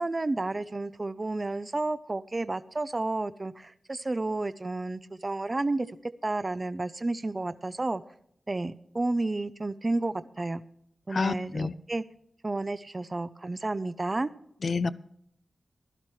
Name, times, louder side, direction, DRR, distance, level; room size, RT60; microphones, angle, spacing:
voice 1, 0.0-5.9 6.2-8.0 8.5-10.6 11.1-12.0 12.4-14.3, right 2 dB, 35° right, 14 dB, 0.6 m, -31 dB
voice 2, 11.1-11.7 14.6-14.9, left 4 dB, 65° left, 17 dB, 0.5 m, -28 dB
16.0 x 12.0 x 3.2 m, 0.71 s
cardioid pair, 55°, 0 cm